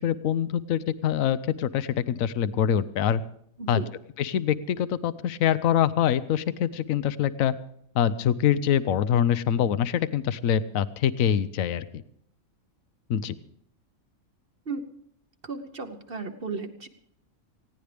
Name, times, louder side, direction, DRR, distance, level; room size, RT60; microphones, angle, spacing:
voice 1, 0.0-3.2 3.7-3.8 4.2-7.5 7.9-12.0 13.1-13.3, left 9 dB, 75° left, 14 dB, 1.1 m, -24 dB
voice 2, 15.4-16.9, right 4 dB, 45° right, 7 dB, 1.3 m, -34 dB
20.0 x 16.0 x 3.4 m, 0.68 s
omnidirectional pair, 1.4 m